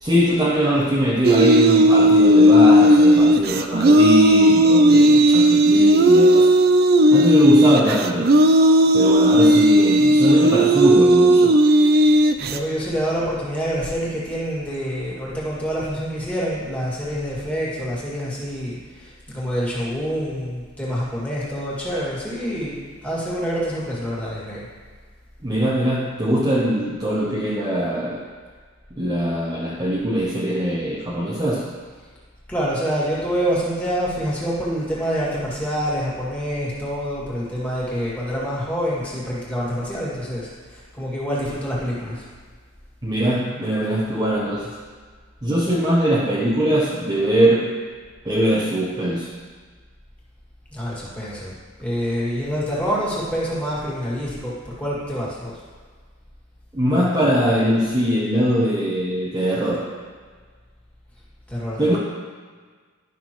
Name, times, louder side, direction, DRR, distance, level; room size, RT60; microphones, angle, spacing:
voice 1, 0.0-6.5 7.1-8.3 8.9-11.6 25.4-28.3 28.9-31.7 43.0-44.8 45.4-47.7 48.2-49.3 56.7-59.9 61.8-62.0, equal, 20° right, -6 dB, 0.8 m, -21 dB
sound 1, 1.2-12.6, equal, 45° right, 0.4 m, -14 dB
voice 2, 12.4-22.8 23.0-24.6 32.5-42.2 50.7-51.5 51.8-55.5 61.5-62.0, equal, 5° left, -7 dB, 2.0 m, -26 dB
11.5 x 5.9 x 3.0 m, 1.6 s
head